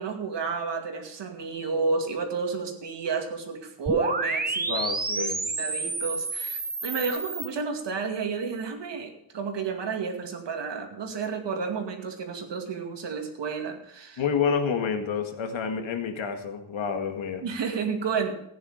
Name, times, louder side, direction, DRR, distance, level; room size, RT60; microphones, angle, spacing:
voice 1, 0.0-4.9 5.2-14.2 17.4-18.3, right 5 dB, 65° right, 4 dB, 2.4 m, -31 dB
sound 1, 3.9-7.5, right 3 dB, 20° right, 1.0 m, -29 dB
voice 2, 4.6-5.4 14.2-17.4, left 6 dB, 75° left, 6 dB, 1.9 m, -29 dB
15.0 x 9.9 x 5.1 m, 0.74 s
wide cardioid pair, 130°, 47 cm